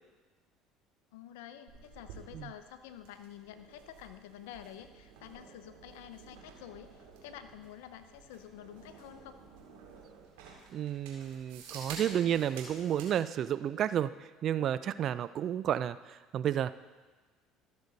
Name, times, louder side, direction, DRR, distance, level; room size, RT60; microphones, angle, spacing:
voice 1, 1.1-9.4, left 10 dB, 80° left, 10 dB, 0.7 m, -49 dB
sound 1, 1.7-13.1, right 4 dB, 80° right, 2.4 m, -51 dB
voice 2, 10.7-14.1 14.4-16.0 16.3-16.7, right 10 dB, 50° right, 15 dB, 0.4 m, -31 dB
14.0 x 6.8 x 4.0 m, 1.3 s
hypercardioid pair, 80°, 0 cm